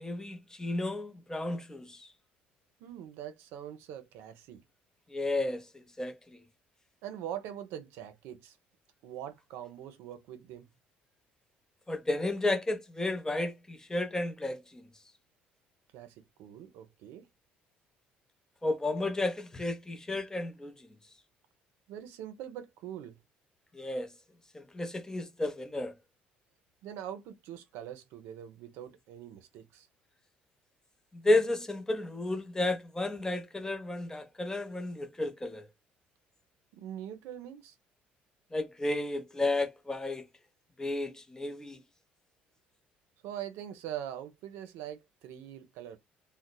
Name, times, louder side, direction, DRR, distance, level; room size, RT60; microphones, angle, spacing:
voice 1, 0.0-2.1 5.1-5.6 6.0-6.2 11.9-14.8 18.6-20.7 23.7-24.1 24.5-25.9 31.1-35.6 38.5-40.2 40.8-41.8, left 2 dB, 15° left, 0.6 m, -32 dB
voice 2, 2.8-4.6 7.0-8.6 9.0-10.7 15.9-17.3 21.9-23.2 26.8-29.9 36.7-37.7 43.2-46.0, right 10 dB, 80° right, 0.5 m, -43 dB
2.8 x 2.0 x 2.2 m
supercardioid pair, 85°, 4 cm